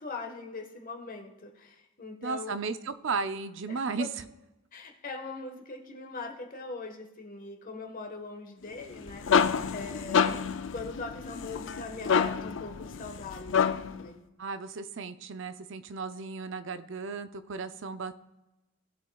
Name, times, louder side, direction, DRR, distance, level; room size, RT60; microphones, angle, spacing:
voice 1, 0.0-2.5 3.7-4.1 4.7-10.4 10.7-14.2, left 3 dB, 45° left, 3 dB, 1.4 m, -41 dB
voice 2, 2.2-4.1 14.4-18.2, right 4 dB, 65° right, 11 dB, 0.6 m, -35 dB
sound 1, 8.8-14.0, left 6 dB, 65° left, 0.5 m, -28 dB
17.5 x 7.6 x 2.3 m, 1.0 s
head